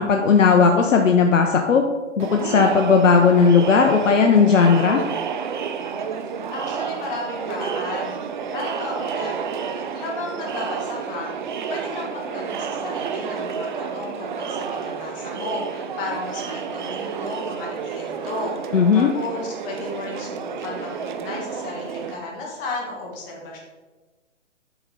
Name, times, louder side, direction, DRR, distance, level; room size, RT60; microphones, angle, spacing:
voice 1, 0.0-1.8 2.2-5.0 18.7-19.1, left 5 dB, 80° left, 3 dB, 0.8 m, -16 dB
Crowd, 2.2-22.1, right 6 dB, 40° right, 0.5 m, -30 dB
voice 2, 6.5-8.2 8.5-11.3 11.7-23.6, left 2 dB, 20° left, -2 dB, 1.5 m, -33 dB
8.0 x 5.1 x 4.1 m, 1.2 s
hypercardioid pair, 145°, 38 cm